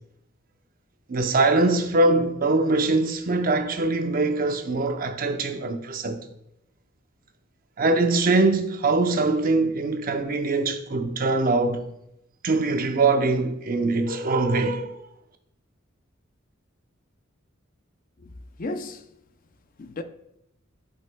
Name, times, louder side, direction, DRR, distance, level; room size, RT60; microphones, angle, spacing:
voice 1, 1.1-6.2 7.8-11.9 12.4-15.0, right 3 dB, 45° right, 0.7 m, -23 dB
voice 2, 18.2-19.1 19.8-20.0, left 2 dB, 45° left, 0.5 m, -35 dB
11.0 x 5.5 x 2.2 m
head